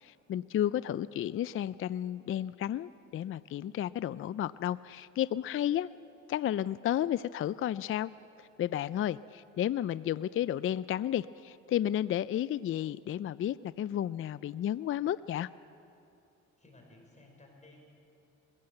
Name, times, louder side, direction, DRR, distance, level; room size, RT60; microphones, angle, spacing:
voice 1, 0.0-5.9 6.3-8.1 8.4-15.5, left 11 dB, 45° left, 17 dB, 0.4 m, -32 dB
voice 2, 16.6-17.9, left 2 dB, 25° left, 1 dB, 5.0 m, -57 dB
22.0 x 16.0 x 7.8 m, 2.6 s
cardioid pair, 90°, 30 cm